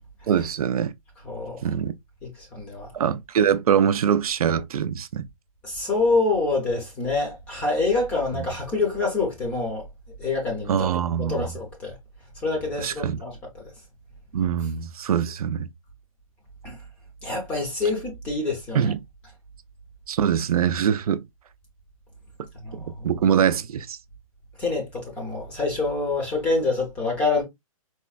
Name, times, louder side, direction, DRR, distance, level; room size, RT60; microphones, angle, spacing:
voice 1, 0.3-0.9 1.6-1.9 2.9-5.3 8.3-8.4 10.7-11.5 12.8-13.2 14.3-15.7 18.7-19.0 20.1-21.2 22.7-24.0, right 8 dB, 85° right, 0.4 m, -23 dB
voice 2, 1.2-1.6 2.2-2.9 5.6-9.9 10.2-10.9 11.2-12.0 12.4-13.6 16.6-16.8 17.2-18.9 22.5-23.2 24.6-27.4, left 3 dB, 10° left, 0.5 m, -26 dB
4.3 x 2.1 x 2.3 m
hypercardioid pair, 170°, 18 cm